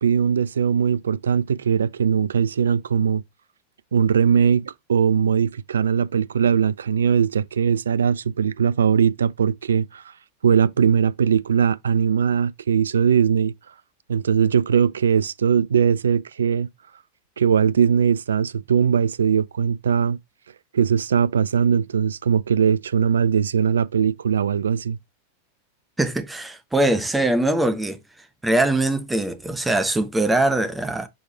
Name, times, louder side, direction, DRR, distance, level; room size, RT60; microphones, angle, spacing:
voice 1, 0.0-3.2 3.9-10.0 10.4-13.5 14.1-16.7 17.4-20.2 20.7-25.0, right 7 dB, 70° right, 0.3 m, -20 dB
voice 2, 26.0-28.0 28.4-31.1, right 2 dB, 5° right, 1.0 m, -22 dB
6.2 x 4.7 x 3.2 m
figure-of-eight pair, 90°, 0 cm